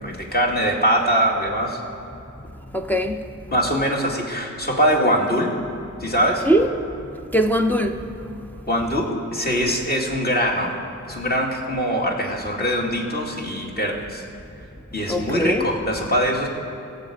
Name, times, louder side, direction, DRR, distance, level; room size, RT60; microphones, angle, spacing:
voice 1, 0.0-1.8 3.5-5.5 6.0-6.5 8.7-10.7 11.0-14.2 14.9-16.5, equal, 30° left, 2.1 m, -22 dB
voice 2, 2.7-3.3 6.4-6.7 7.3-8.1 15.1-15.6, right 1 dB, 5° left, 0.6 m, -20 dB
17.0 x 7.4 x 5.1 m
cardioid pair, 45°, 32 cm